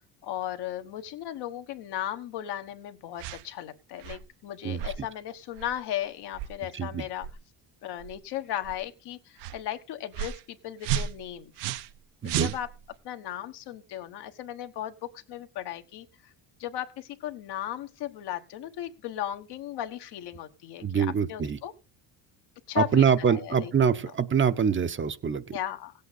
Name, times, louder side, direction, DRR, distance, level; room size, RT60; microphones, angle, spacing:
voice 1, 0.2-7.3 7.8-11.7 12.2-12.7 13.0-16.3 16.6-21.7 22.7-23.7 25.5-25.9, left 12 dB, 70° left, 6 dB, 1.4 m, -36 dB
sound 1, 3.2-3.4 4.0-4.3 4.8-5.0 5.6-5.7 6.3-6.6 7.2-7.4 8.0-8.2 8.6-8.8 9.4-9.6 10.1-10.4 10.8-12.0 12.2-12.9, right 10 dB, 75° right, 0.9 m, -33 dB
voice 2, 6.7-7.0 12.2-12.5 20.8-21.6 22.8-25.5, right 7 dB, 30° right, 11 dB, 0.8 m, -25 dB
16.5 x 8.3 x 4.1 m, 0.30 s
cardioid pair, 110°, 41 cm